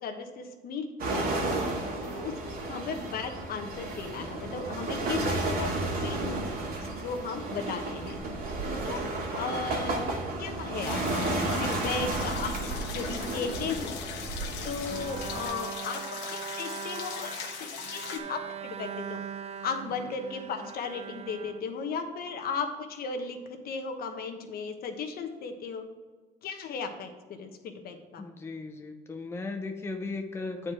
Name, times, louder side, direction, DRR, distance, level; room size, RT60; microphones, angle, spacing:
voice 1, 0.0-1.3 2.1-2.3 2.7-5.7 6.0-6.2 6.8-8.1 8.8-9.0 9.3-10.1 10.4-12.5 12.8-13.9 14.6-16.0 16.3-17.6 17.9-19.2 19.6-25.8 26.4-28.2, left 5 dB, 65° left, 5 dB, 1.1 m, -36 dB
sound 1, 1.0-15.4, right 2 dB, 60° right, 2.0 m, -32 dB
sound 2, 10.8-18.2, left 7 dB, 85° left, 1.1 m, -40 dB
Bowed string instrument, 14.9-22.3, right 7 dB, 40° right, 0.4 m, -40 dB
voice 2, 28.2-30.7, left 3 dB, 15° left, 5 dB, 0.6 m, -36 dB
8.4 x 4.6 x 4.9 m, 1.3 s
cardioid pair, 110°, 17 cm